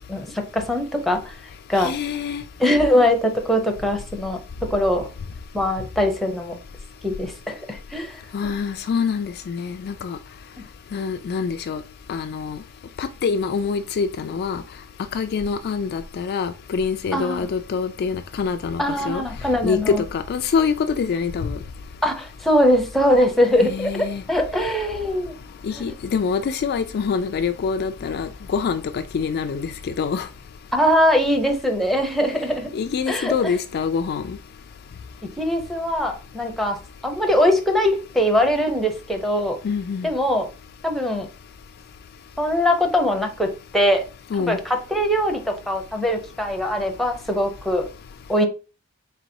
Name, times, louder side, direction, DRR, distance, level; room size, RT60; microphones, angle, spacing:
voice 1, 0.1-1.4 1.7-1.9 2.6-5.1 5.5-6.5 7.0-8.5 17.1-17.5 18.8-20.0 22.0-25.3 25.7-25.8 30.7-32.7 33.1-33.6 35.4-39.6 40.0-40.5 40.8-41.3 42.4-44.0 44.4-47.9 48.3-48.5, equal, ahead, 0.6 m, -22 dB
voice 2, 1.8-2.4 8.3-10.2 10.9-11.8 12.1-12.6 13.0-14.6 15.1-19.2 19.6-21.6 23.6-24.2 25.6-30.3 32.7-34.4 39.6-40.1 44.3-44.6, left 5 dB, 45° left, 0.3 m, -25 dB
4.0 x 3.8 x 2.7 m
head